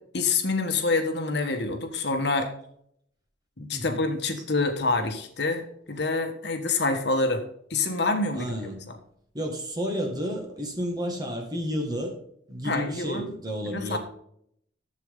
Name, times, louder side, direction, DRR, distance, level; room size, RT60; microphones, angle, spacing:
voice 1, 0.1-2.5 3.6-7.4 7.7-8.5 12.6-13.3 13.7-14.0, left 3 dB, 60° left, 6 dB, 1.3 m, -26 dB
voice 2, 3.7-4.0 8.3-8.8 9.3-12.2 12.5-14.0, equal, 20° right, 1 dB, 1.9 m, -31 dB
11.5 x 7.7 x 3.8 m, 0.68 s
head